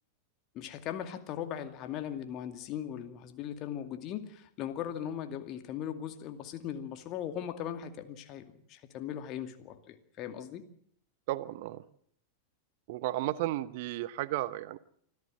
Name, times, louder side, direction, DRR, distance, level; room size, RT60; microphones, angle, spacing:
voice 1, 0.5-8.4 8.7-10.6, left 10 dB, 35° left, 8 dB, 2.3 m, -39 dB
voice 2, 11.3-11.8 12.9-14.8, right 15 dB, 50° right, 18 dB, 0.8 m, -33 dB
26.0 x 14.0 x 7.7 m, 0.65 s
figure-of-eight pair, 90°, 0 cm